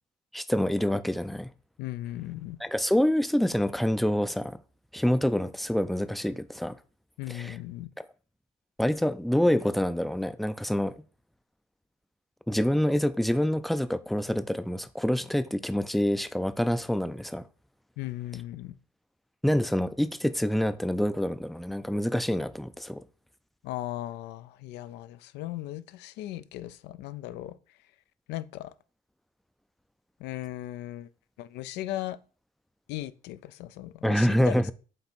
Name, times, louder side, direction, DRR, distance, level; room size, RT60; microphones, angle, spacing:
voice 1, 0.3-1.5 2.6-4.6 4.9-6.8 7.3-7.6 8.8-10.9 12.5-17.4 19.4-23.0 34.0-34.7, equal, ahead, 0.4 m, -26 dB
voice 2, 1.8-2.6 7.2-7.9 18.0-18.7 23.6-27.6 28.3-28.7 30.2-31.1 31.4-32.2 32.9-34.7, left 14 dB, 85° left, 0.5 m, -37 dB
7.8 x 2.9 x 4.2 m
cardioid pair, 110°, 17 cm